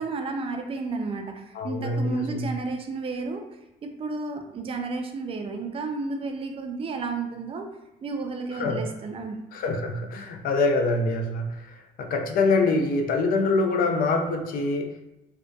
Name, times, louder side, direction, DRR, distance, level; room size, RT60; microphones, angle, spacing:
voice 1, 0.0-3.4 3.8-7.7 8.0-9.4, right 3 dB, 35° right, 4 dB, 0.3 m, -32 dB
voice 2, 1.5-2.5 8.6-8.8 9.5-15.1, left 3 dB, 60° left, 5 dB, 0.4 m, -25 dB
2.6 x 2.1 x 2.2 m, 0.92 s
cardioid pair, 110°, 17 cm